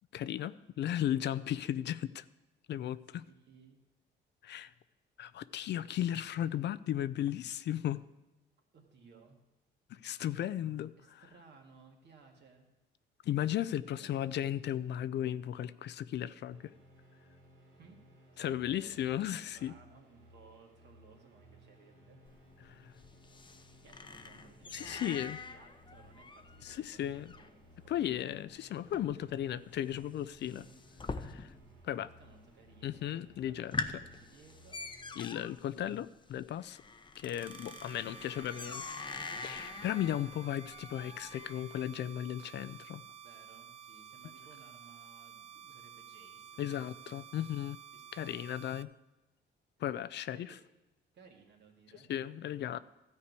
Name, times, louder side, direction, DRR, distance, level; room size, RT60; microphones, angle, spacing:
voice 1, 0.1-2.2 2.7-3.2 4.4-4.7 5.2-8.0 9.9-11.2 13.2-16.7 18.4-19.7 22.6-22.9 24.7-25.4 26.6-27.3 27.9-30.6 31.2-31.5 31.8-32.1 32.8-33.8 35.2-36.8 37.2-38.8 39.4-43.0 46.6-47.8 48.1-48.9 49.8-50.5 51.9-52.8, left 11 dB, 60° left, 16 dB, 0.4 m, -36 dB
voice 2, 3.2-3.8 8.7-9.4 11.0-12.7 14.0-14.1 17.7-18.0 18.3-19.0 19.5-22.2 23.8-25.2 25.5-28.4 30.4-30.7 32.0-33.6 33.8-34.8 37.4-39.8 43.2-47.2 47.9-48.5 50.1-50.6 51.1-52.1, right 5 dB, 60° right, 1 dB, 2.1 m, -60 dB
sound 1, 16.5-35.2, equal, 90° right, 3.3 m, -60 dB
sound 2, 22.3-32.7 33.1-33.2 33.5-41.8, left 4 dB, 25° left, 0.7 m, -45 dB
sound 3, 37.4-48.8, right 9 dB, 30° right, 0.5 m, -52 dB
13.0 x 4.7 x 8.2 m, 1.0 s
cardioid pair, 90°, 20 cm